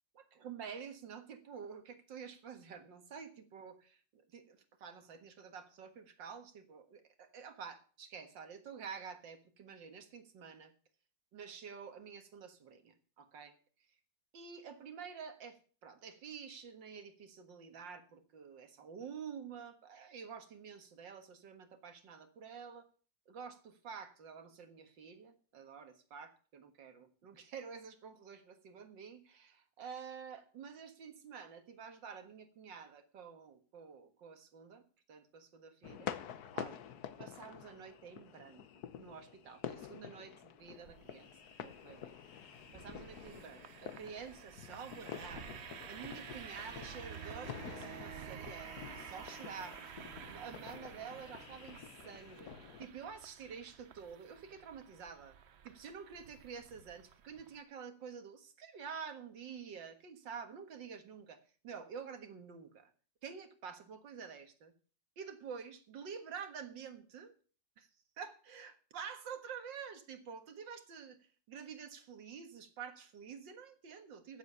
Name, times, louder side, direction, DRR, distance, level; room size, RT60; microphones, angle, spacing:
voice 1, 0.1-10.7 11.3-13.6 14.3-22.9 23.3-34.8 35.1-36.1 36.5-36.8 37.2-38.6 39.0-41.3 41.6-42.1 42.7-52.5 52.8-55.4 55.6-62.9 63.2-64.7 65.2-67.3 67.8-67.9 68.2-74.4, right 6 dB, 85° right, 8 dB, 2.3 m, -49 dB
sound 1, 35.8-52.9, left 9 dB, 65° left, 1.3 m, -48 dB
sound 2, 40.6-57.6, right 8 dB, 55° right, 0.8 m, -52 dB
14.5 x 7.4 x 6.7 m, 0.40 s
omnidirectional pair, 1.9 m